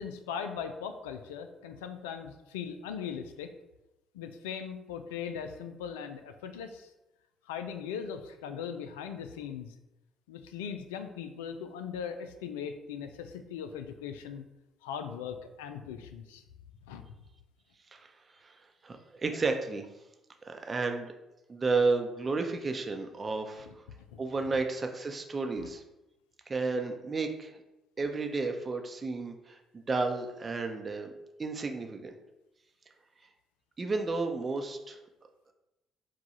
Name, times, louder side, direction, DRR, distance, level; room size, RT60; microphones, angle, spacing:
voice 1, 0.0-3.5 4.1-6.9 7.5-9.7 10.3-14.4 14.8-16.4 16.9-17.1 24.1-24.2 24.5-24.6 25.6-25.7, left 7 dB, 85° left, 8 dB, 0.3 m, -39 dB
voice 2, 18.8-19.9 20.4-21.1 21.5-23.7 24.2-25.8 26.5-27.6 28.0-31.1 31.4-32.1 33.8-35.0, right 3 dB, 35° right, 5 dB, 0.6 m, -32 dB
4.6 x 2.3 x 4.1 m, 0.96 s
hypercardioid pair, 50°, 0 cm